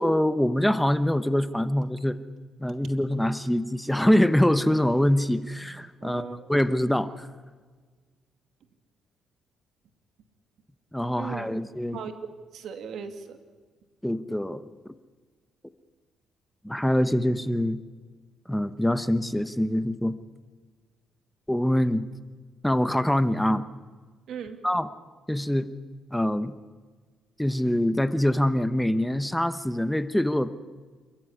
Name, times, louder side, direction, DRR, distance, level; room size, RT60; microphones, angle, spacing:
voice 1, 0.0-2.2 2.6-7.3 10.9-12.0 14.0-14.6 16.6-17.8 18.5-20.2 21.5-22.1 22.6-23.6 24.6-24.9 25.3-25.7 26.1-26.5 27.4-30.5, left 1 dB, 5° left, 13 dB, 1.0 m, -24 dB
voice 2, 6.0-6.5 11.2-11.5 11.9-12.1 12.5-13.4 24.3-24.6, right 7 dB, 70° right, 8 dB, 2.5 m, -37 dB
27.5 x 14.0 x 9.9 m, 1.5 s
cardioid pair, 90°, 0 cm